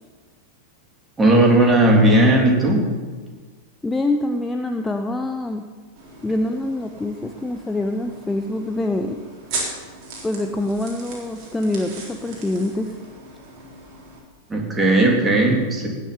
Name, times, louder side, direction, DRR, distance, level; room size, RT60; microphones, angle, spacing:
voice 1, 1.2-2.8 14.5-15.9, right 1 dB, 15° right, -1 dB, 3.2 m, -16 dB
voice 2, 3.8-5.6 6.2-9.2 10.2-13.0, left 2 dB, 10° left, 5 dB, 0.7 m, -25 dB
sound 1, 6.0-14.2, right 3 dB, 40° right, 3.7 m, -37 dB
19.0 x 6.7 x 7.1 m, 1.4 s
figure-of-eight pair, 90°, 0 cm